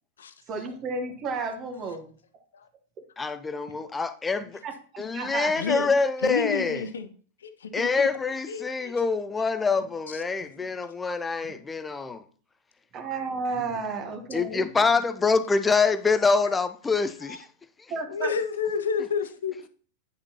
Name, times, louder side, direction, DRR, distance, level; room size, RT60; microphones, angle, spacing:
voice 1, 0.5-2.1 4.6-5.5 11.4-11.5 12.9-14.7 17.9-18.3, right 4 dB, 30° right, 1.2 m, -32 dB
voice 2, 3.2-4.6 5.0-6.8 7.7-12.2 14.3-17.5, left 4 dB, 15° left, 0.6 m, -25 dB
voice 3, 5.6-5.9 6.2-7.1 7.4-8.1 8.5-9.0 10.1-10.2 10.6-10.7 17.2-17.4 18.1-19.6, left 6 dB, 65° left, 0.7 m, -30 dB
9.5 x 6.6 x 2.9 m
figure-of-eight pair, 90°, 0 cm